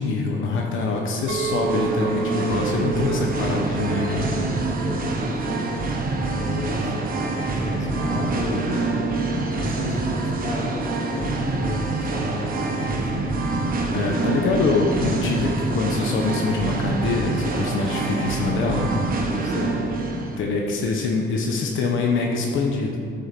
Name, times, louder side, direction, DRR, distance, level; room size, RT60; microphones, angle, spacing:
voice 1, 0.0-4.3 13.9-18.9 20.4-23.0, left 3 dB, 80° left, 0 dB, 1.0 m, -24 dB
Singing, 1.2-20.4, right 3 dB, 45° right, 1.4 m, -26 dB
Chink clink, 1.3-6.5, right 7 dB, 85° right, 0.6 m, -31 dB
voice 2, 4.1-4.6 4.8-5.7 6.4-6.9 7.2-8.9 9.5-13.3 19.4-19.8, left 2 dB, 35° left, -2 dB, 2.2 m, -33 dB
12.0 x 4.9 x 5.9 m, 2.4 s
cardioid pair, 90°, 20 cm